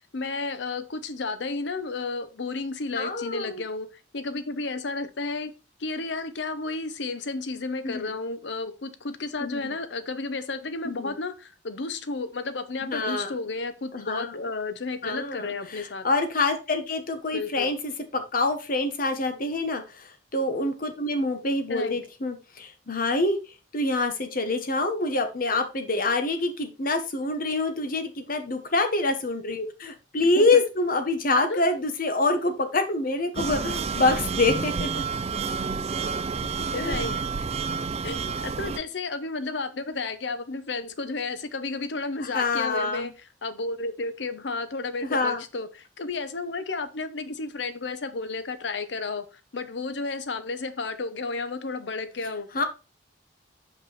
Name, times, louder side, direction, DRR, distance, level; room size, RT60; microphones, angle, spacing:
voice 1, 0.1-3.9 4.1-5.5 5.8-16.1 17.3-17.7 21.7-22.0 30.4-30.6 31.5-31.6 36.5-37.5 38.0-49.3 49.5-52.5, left 3 dB, 75° left, 0.8 m, -32 dB
voice 2, 2.9-3.6 7.8-8.1 9.4-9.7 10.8-11.1 12.8-13.3 13.9-14.4 15.0-23.4 23.7-35.0 36.3-36.5 36.8-37.0 42.2-43.1 45.0-45.4 52.5-52.6, left 2 dB, 50° left, 1.2 m, -26 dB
sound 1, 33.3-38.8, right 5 dB, 35° right, 0.5 m, -29 dB
5.5 x 5.4 x 4.0 m
head